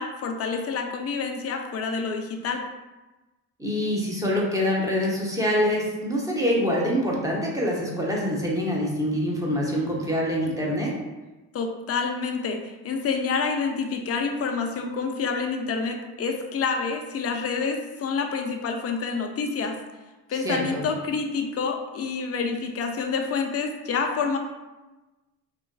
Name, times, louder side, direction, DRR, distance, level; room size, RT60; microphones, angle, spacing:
voice 1, 0.0-2.6 11.5-12.6 12.8-19.8 20.3-24.4, left 5 dB, 35° left, 4 dB, 0.4 m, -28 dB
voice 2, 3.6-10.9 20.4-20.8, equal, 10° right, -4 dB, 0.7 m, -25 dB
3.0 x 2.5 x 2.3 m, 1.1 s
supercardioid pair, 70°, 42 cm